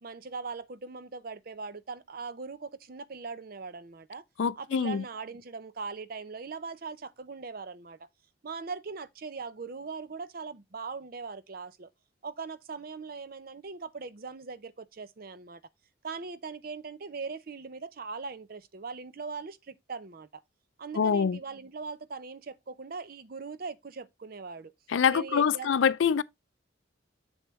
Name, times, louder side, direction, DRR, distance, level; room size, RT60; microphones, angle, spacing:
voice 1, 0.0-4.2 4.6-8.1 8.4-11.9 12.2-15.6 16.0-20.4 20.8-24.7 25.1-25.7, right 4 dB, 50° right, 0.6 m, -40 dB
voice 2, 4.4-5.0 21.0-21.4 24.9-26.2, left 6 dB, 80° left, 0.4 m, -25 dB
7.1 x 6.9 x 3.1 m
head